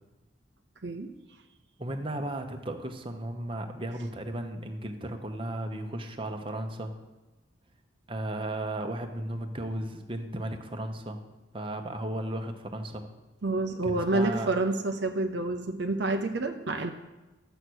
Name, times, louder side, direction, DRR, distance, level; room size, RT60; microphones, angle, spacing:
voice 1, 1.8-6.9 8.1-11.2 11.5-13.0 13.8-14.5, right 1 dB, 25° right, 5 dB, 1.0 m, -35 dB
voice 2, 13.4-16.9, right 2 dB, 60° right, 5 dB, 0.7 m, -28 dB
11.5 x 8.0 x 6.3 m, 1.1 s
head